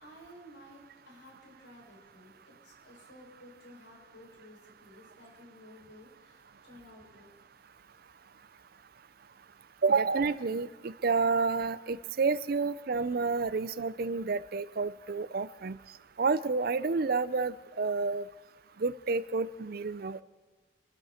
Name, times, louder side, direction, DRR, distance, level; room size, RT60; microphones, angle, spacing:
voice 1, 0.0-7.3, equal, 65° left, -1 dB, 6.0 m, -54 dB
voice 2, 9.8-15.8 16.2-18.2 18.8-20.2, right 4 dB, 50° right, 16 dB, 0.4 m, -29 dB
26.0 x 12.5 x 4.3 m, 1.4 s
head